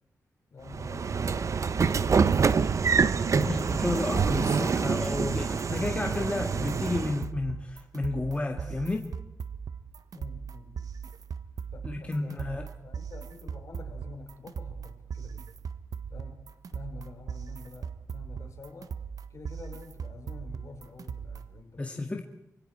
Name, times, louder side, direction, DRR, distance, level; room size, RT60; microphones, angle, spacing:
voice 1, 0.5-2.4 10.1-10.9 11.7-15.5 16.1-18.9 19.3-22.2, left 4 dB, 55° left, 4 dB, 4.8 m, -48 dB
Train / Sliding door, 0.7-7.3, right 5 dB, 55° right, 0.9 m, -26 dB
sound 1, 2.1-21.6, right 6 dB, 75° right, 1.3 m, -39 dB
voice 2, 3.3-9.1 11.8-12.7 21.8-22.2, left 2 dB, 20° left, 2 dB, 2.1 m, -32 dB
26.0 x 23.5 x 4.6 m, 0.86 s
wide cardioid pair, 100°, 6 cm